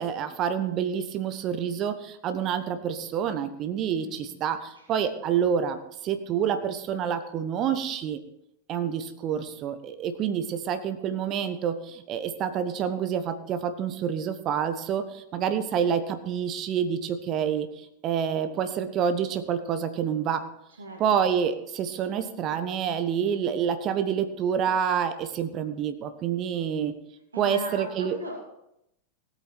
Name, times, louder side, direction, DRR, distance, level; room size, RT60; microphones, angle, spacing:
voice 1, 0.0-8.2 8.7-20.5 21.0-26.9 27.4-28.2, right 8 dB, 35° right, 10 dB, 1.1 m, -28 dB
voice 2, 4.0-4.3 4.7-4.9 20.8-21.0 27.3-28.4, equal, 75° right, 0 dB, 2.6 m, -38 dB
18.0 x 8.4 x 4.4 m, 0.81 s
figure-of-eight pair, 90°, 0 cm